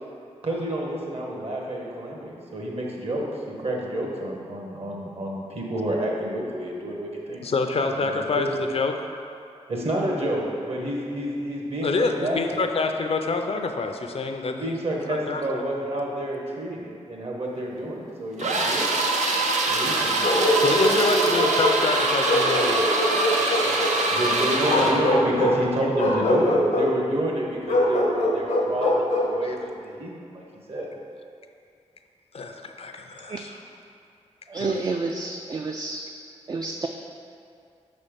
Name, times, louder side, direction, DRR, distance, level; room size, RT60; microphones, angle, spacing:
voice 1, 0.4-7.4 8.0-8.1 8.3-8.5 9.7-12.6 14.4-18.9 19.7-20.5 24.1-30.9, right 1 dB, 55° right, -2 dB, 1.2 m, -29 dB
voice 2, 7.4-8.9 11.8-14.5 15.1-15.6 20.5-22.8 29.4-29.6 32.3-33.6 34.6-34.8, left 4 dB, 55° left, 5 dB, 0.5 m, -27 dB
sound 1, 18.4-25.1, right 2 dB, 80° right, 0.7 m, -24 dB
Bark, 20.2-21.8 22.2-24.0 24.6-25.6 26.0-26.9 27.7-29.4, left 1 dB, 80° left, 0.8 m, -23 dB
voice 3, 34.5-36.0 36.5-36.9, right 3 dB, 35° right, 2 dB, 0.3 m, -29 dB
5.4 x 4.2 x 5.1 m, 2.5 s
cardioid pair, 75°, 12 cm